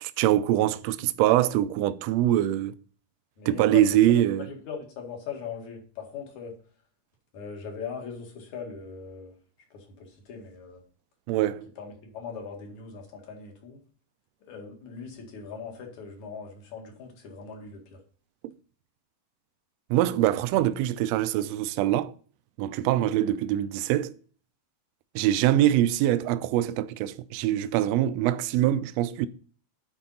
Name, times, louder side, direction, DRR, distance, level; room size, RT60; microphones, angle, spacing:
voice 1, 0.0-2.7 3.5-4.5 11.3-11.7 18.4-18.5 19.9-22.1 22.6-24.1 25.1-29.3, right 13 dB, 80° right, 1.6 m, -24 dB
voice 2, 3.4-4.0 4.4-6.5 7.3-9.4 9.7-10.8 11.8-13.8 14.5-18.0, left 6 dB, 75° left, 3.3 m, -40 dB
9.3 x 4.4 x 5.6 m
omnidirectional pair, 3.4 m